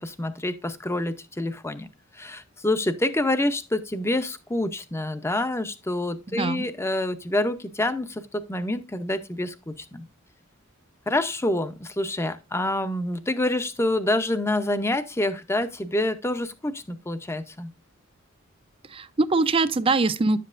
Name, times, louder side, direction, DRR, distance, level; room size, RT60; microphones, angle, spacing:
voice 1, 0.0-1.9 2.1-10.1 11.1-17.7, left 1 dB, 15° left, 0.6 m, -27 dB
voice 2, 6.3-6.6 18.9-20.4, right 3 dB, 25° right, 0.5 m, -23 dB
10.5 x 7.6 x 2.5 m
head